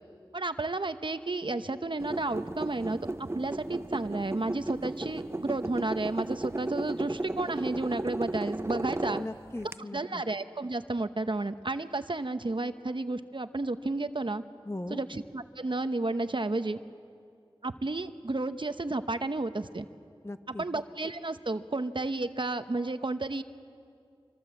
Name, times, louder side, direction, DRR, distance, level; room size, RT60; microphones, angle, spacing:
voice 1, 0.3-9.2 9.9-14.4 14.9-16.8 17.6-19.9 20.6-23.4, right 2 dB, 60° right, 10 dB, 0.9 m, -32 dB
sound 1, 2.0-9.7, right 2 dB, 25° right, 0.6 m, -35 dB
voice 2, 9.2-10.2 14.7-15.0 20.2-20.6, left 1 dB, 30° left, 9 dB, 1.1 m, -38 dB
25.5 x 25.0 x 7.8 m, 2.4 s
wide cardioid pair, 40°, 9 cm